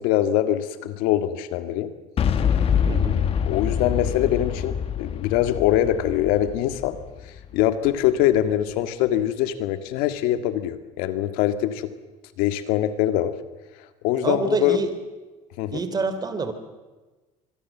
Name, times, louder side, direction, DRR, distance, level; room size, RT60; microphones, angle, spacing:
voice 1, 0.0-1.9 3.5-7.0 7.5-11.9 12.4-13.3 14.0-14.8 15.6-15.8, left 12 dB, 80° left, 10 dB, 1.8 m, -23 dB
Boom, 2.2-8.0, left 8 dB, 40° left, 1.7 m, -25 dB
voice 2, 2.8-3.2 14.2-14.9 15.7-16.5, right 4 dB, 25° right, 10 dB, 3.1 m, -26 dB
26.0 x 22.0 x 7.2 m, 1.2 s
cardioid pair, 115°, 15 cm